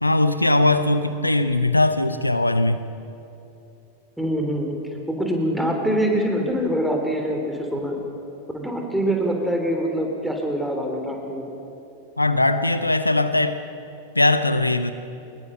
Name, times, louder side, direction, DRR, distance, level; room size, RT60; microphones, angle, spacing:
voice 1, 0.0-2.8 12.2-13.6 14.1-14.9, left 2 dB, 85° left, 11 dB, 0.8 m, -20 dB
voice 2, 4.2-4.8 5.1-8.0 8.5-11.5, equal, ahead, 2 dB, 3.5 m, -24 dB
23.0 x 21.0 x 5.7 m, 2.8 s
figure-of-eight pair, 90°, 0 cm